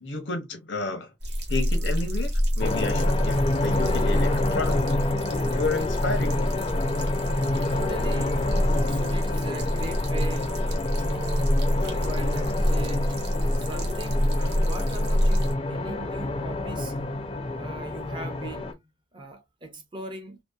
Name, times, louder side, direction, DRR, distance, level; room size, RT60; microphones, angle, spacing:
voice 1, 0.0-1.1 1.5-4.9 5.5-6.5, left 3 dB, 85° left, 0.7 m, -31 dB
sound 1, 1.2-15.5, equal, 65° right, 0.8 m, -26 dB
sound 2, 2.6-18.7, left 2 dB, 30° left, 0.4 m, -28 dB
voice 2, 7.5-8.5 8.9-13.2 13.6-17.0 17.5-20.4, right 2 dB, 25° right, 0.5 m, -40 dB
2.7 x 2.0 x 2.3 m
head